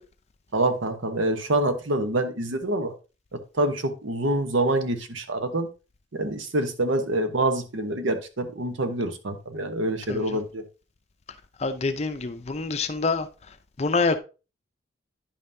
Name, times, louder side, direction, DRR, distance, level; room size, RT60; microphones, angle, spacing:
voice 1, 0.5-2.9 3.3-5.7 6.1-10.6, right 1 dB, 85° right, 1.0 m, -26 dB
voice 2, 11.6-13.3 13.8-14.2, left 3 dB, 35° left, 0.5 m, -26 dB
10.0 x 5.5 x 2.7 m
head